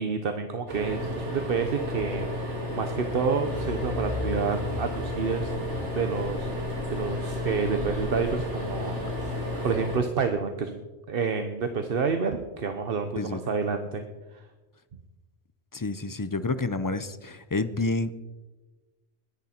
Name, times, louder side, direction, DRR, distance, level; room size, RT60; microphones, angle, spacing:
voice 1, 0.0-5.5 5.9-6.5 6.9-9.1 9.6-10.8 11.1-14.0 14.3-14.4, right 5 dB, 55° right, 7 dB, 1.0 m, -29 dB
sound 1, 0.7-10.0, left 1 dB, 80° right, 3.1 m, -32 dB
sound 2, 3.4-9.8, left 1 dB, 10° right, 3.5 m, -39 dB
voice 2, 13.2-13.5 15.7-18.1, left 3 dB, 30° left, 13 dB, 0.4 m, -29 dB
21.5 x 10.5 x 4.4 m, 1.2 s
omnidirectional pair, 1.2 m